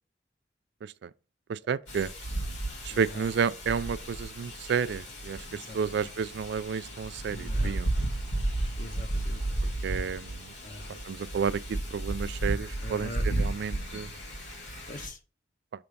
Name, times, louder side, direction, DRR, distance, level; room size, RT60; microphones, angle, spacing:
voice 1, 1.5-2.1 2.8-8.0 9.8-10.5 11.1-14.1, right 6 dB, 65° right, 0.3 m, -31 dB
Wind, 1.9-15.1, right 1 dB, 80° left, 2.3 m, -33 dB
voice 2, 2.9-3.2 5.5-5.8 7.3-7.8 8.8-9.4 10.6-11.0 12.8-13.2 14.9-15.2, left 1 dB, 50° left, 1.2 m, -42 dB
6.8 x 3.3 x 5.3 m
head